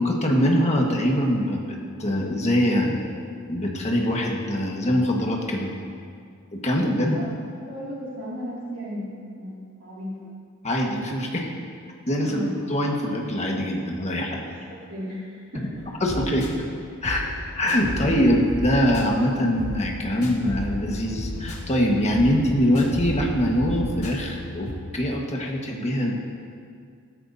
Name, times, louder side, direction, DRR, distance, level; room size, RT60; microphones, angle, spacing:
voice 1, 0.0-3.0 3.5-5.7 6.5-7.2 10.6-11.5 12.1-14.4 16.0-16.5 17.0-17.2 17.5-26.1, equal, 30° left, 0 dB, 1.5 m, -23 dB
voice 2, 7.7-10.3 12.2-12.6 14.5-15.9 17.2-17.5 17.9-18.1, equal, 75° right, -6 dB, 2.5 m, -36 dB
sound 1, 15.8-24.7, equal, 70° left, 1.9 m, -34 dB
15.5 x 13.5 x 2.8 m, 2.3 s
head